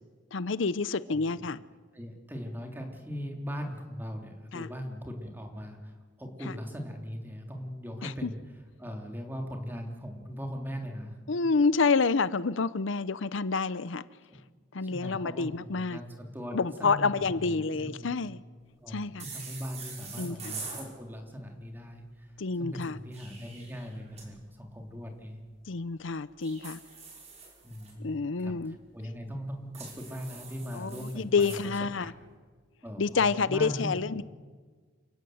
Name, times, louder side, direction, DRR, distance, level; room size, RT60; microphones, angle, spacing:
voice 1, 0.3-1.6 4.5-4.7 8.0-8.3 11.3-14.0 14.7-16.0 16.5-18.4 18.9-19.2 20.2-20.5 22.4-23.0 25.7-26.8 28.0-28.7 30.7-32.1 33.0-34.2, left 4 dB, 80° left, 16 dB, 0.7 m, -28 dB
voice 2, 1.9-8.4 8.8-11.2 14.3-14.4 14.8-18.3 18.8-25.4 27.6-32.1 32.8-34.2, equal, 10° right, 2 dB, 3.4 m, -40 dB
sound 1, 19.2-20.9 22.9-24.3 26.4-27.9 29.7-31.6, right 4 dB, 35° right, 5.9 m, -44 dB
29.0 x 17.0 x 7.9 m, 1.5 s
head